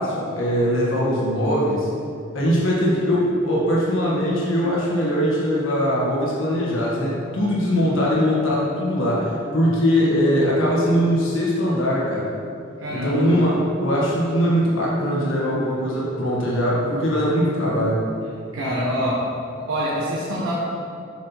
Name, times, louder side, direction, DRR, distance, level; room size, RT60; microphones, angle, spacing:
voice 1, 0.0-1.9 2.3-12.3 12.9-18.0, equal, 75° left, -5 dB, 1.3 m, -21 dB
voice 2, 12.8-13.4 18.5-19.2 19.7-20.5, equal, 85° right, -7 dB, 1.1 m, -25 dB
7.4 x 5.5 x 2.9 m, 2.5 s
head